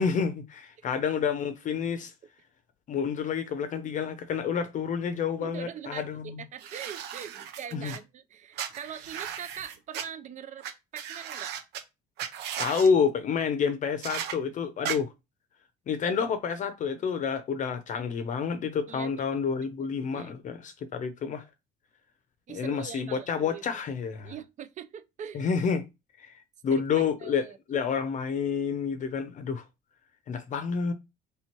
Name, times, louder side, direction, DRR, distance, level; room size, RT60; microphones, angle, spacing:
voice 1, 0.0-2.1 2.9-6.4 7.7-7.9 12.6-15.1 15.9-21.5 22.5-24.3 25.3-25.8 26.2-26.4 26.6-29.6 30.3-30.9, left 6 dB, 50° left, 0.6 m, -29 dB
voice 2, 5.4-10.7 10.9-11.5 12.6-12.7 18.9-19.2 20.1-20.3 22.5-23.6 24.2-25.5 26.7-27.6, right 8 dB, 45° right, 0.5 m, -42 dB
sound 1, 6.6-8.0 8.6-10.0 10.6-10.7 11.0-11.8 12.2-12.9 14.0-14.3 14.8-15.0, right 9 dB, 85° right, 0.8 m, -36 dB
3.3 x 3.0 x 4.4 m
cardioid pair, 110°, 17 cm